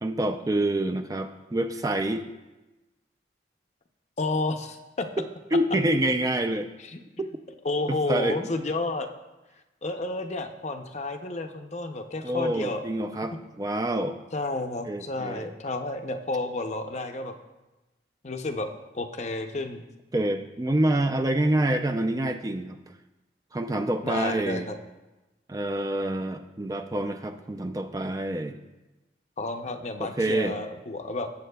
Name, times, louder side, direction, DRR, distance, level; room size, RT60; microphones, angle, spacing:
voice 1, 0.0-2.3 5.5-6.7 7.9-8.4 12.2-14.2 14.9-15.5 20.1-22.8 23.5-24.7 25.5-28.6 30.0-30.6, right 1 dB, 20° right, 6 dB, 0.4 m, -27 dB
voice 2, 4.2-5.1 6.8-7.0 7.6-9.1 9.8-12.8 14.3-17.3 18.2-18.7 18.9-19.8 24.0-24.8 29.4-31.3, left 2 dB, 40° left, 6 dB, 0.6 m, -31 dB
17.0 x 7.4 x 2.3 m, 1.1 s
head